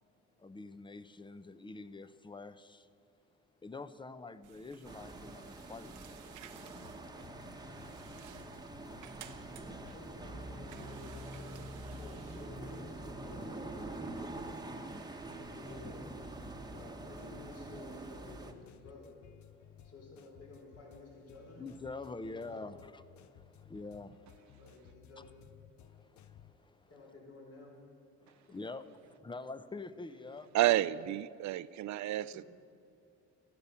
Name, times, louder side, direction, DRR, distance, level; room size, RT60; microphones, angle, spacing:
voice 1, 0.4-2.9 3.6-6.7 9.4-10.0 21.6-24.6 25.2-25.3 25.8-27.0 28.5-30.5 30.7-30.9, left 3 dB, 15° left, 14 dB, 0.7 m, -47 dB
sound 1, 4.4-14.7, right 10 dB, 85° right, 0.9 m, -57 dB
sound 2, 4.8-18.5, right 2 dB, 15° right, 1.2 m, -45 dB
sound 3, 6.7-26.5, left 9 dB, 70° left, 0.7 m, -59 dB
voice 2, 9.8-11.6 12.0-14.2 15.4-16.0 16.7-19.1 19.8-21.7 22.1-22.8 24.4-25.4 26.9-27.7 30.2-30.3 32.3-32.4, left 3 dB, 50° left, -1 dB, 3.9 m, -53 dB
voice 3, 30.5-32.4, right 14 dB, 70° right, 17 dB, 0.5 m, -30 dB
15.0 x 11.5 x 7.0 m, 2.7 s
cardioid pair, 90°, 30 cm